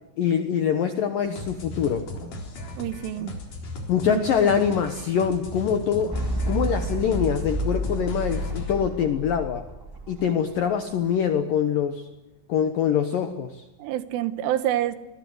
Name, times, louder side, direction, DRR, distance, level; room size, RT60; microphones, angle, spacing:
voice 1, 0.2-2.1 3.9-6.2 6.5-9.6 10.1-12.0 12.5-13.6, left 8 dB, 75° left, 8 dB, 2.0 m, -24 dB
sound 1, 1.2-8.8, left 1 dB, 40° left, 4.8 m, -37 dB
voice 2, 2.8-3.4 4.1-4.5 13.8-15.0, right 12 dB, 80° right, 13 dB, 3.6 m, -27 dB
sound 2, 6.1-10.6, right 1 dB, 5° right, 2.5 m, -30 dB
26.5 x 20.5 x 8.0 m, 1.0 s
omnidirectional pair, 5.8 m